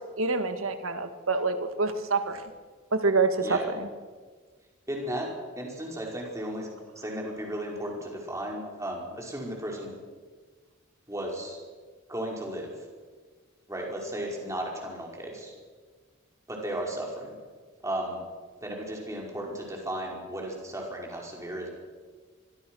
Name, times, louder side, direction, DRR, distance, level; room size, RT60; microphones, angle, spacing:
voice 1, 0.2-2.4 3.0-3.9, right 3 dB, 85° right, 8 dB, 2.0 m, -26 dB
voice 2, 4.9-5.3 5.6-6.7 7.0-9.9 11.1-11.6 12.1-12.7 13.7-15.5 16.5-17.4 17.8-18.2 18.6-21.7, right 1 dB, 15° right, -1 dB, 5.3 m, -35 dB
25.0 x 22.5 x 6.4 m, 1.5 s
head